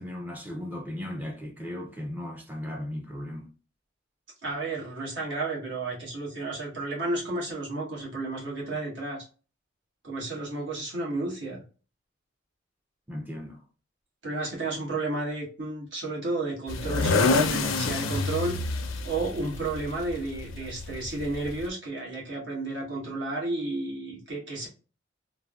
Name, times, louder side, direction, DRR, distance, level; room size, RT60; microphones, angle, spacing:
voice 1, 0.0-3.5 13.1-13.6, left 1 dB, 10° right, 0.4 m, -36 dB
voice 2, 4.4-9.3 10.0-11.6 14.2-18.7 19.0-24.7, right 2 dB, 60° right, 1.3 m, -32 dB
sound 1, 16.7-21.7, left 3 dB, 85° left, 0.4 m, -28 dB
3.3 x 2.1 x 2.3 m
head